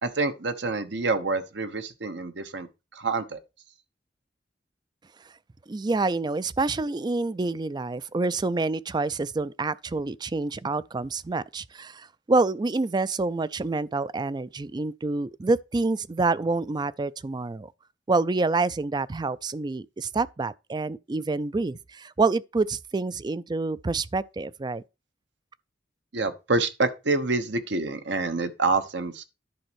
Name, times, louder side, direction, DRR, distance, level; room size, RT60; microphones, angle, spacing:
voice 1, 0.0-3.4 26.1-29.3, right 3 dB, 70° right, 1.1 m, -27 dB
voice 2, 5.7-17.7 18.1-24.8, right 3 dB, 25° right, 0.4 m, -27 dB
10.5 x 4.1 x 6.2 m
head